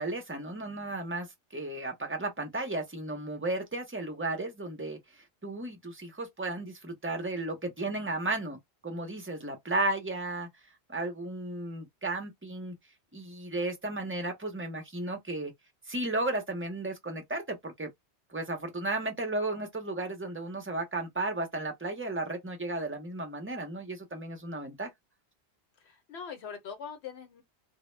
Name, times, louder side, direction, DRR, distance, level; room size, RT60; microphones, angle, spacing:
voice 1, 0.0-8.6 8.8-10.5 10.9-12.7 13.1-15.5 15.9-17.9 18.3-24.9, right 2 dB, 20° right, 0.3 m, -34 dB
voice 2, 25.8-27.4, left 6 dB, 70° left, 0.9 m, -42 dB
2.0 x 2.0 x 3.1 m
omnidirectional pair, 1.2 m